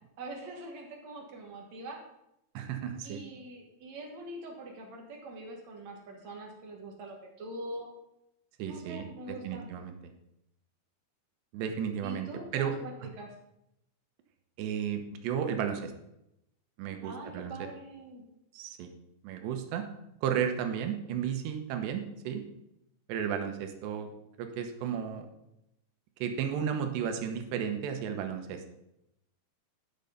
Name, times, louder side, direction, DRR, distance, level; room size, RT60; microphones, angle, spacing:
voice 1, 0.2-2.0 3.0-7.9 8.7-9.7 12.0-13.3 17.0-18.2, right 1 dB, 60° right, 1 dB, 2.0 m, -43 dB
voice 2, 2.5-3.2 8.6-9.1 9.4-9.9 11.5-12.7 14.6-15.9 16.8-17.5 18.5-18.9 19.2-19.9 20.2-22.4 23.1-24.1 24.4-25.3 26.2-28.6, right 8 dB, 85° right, 6 dB, 3.2 m, -33 dB
10.5 x 6.7 x 5.2 m, 0.84 s
omnidirectional pair, 4.8 m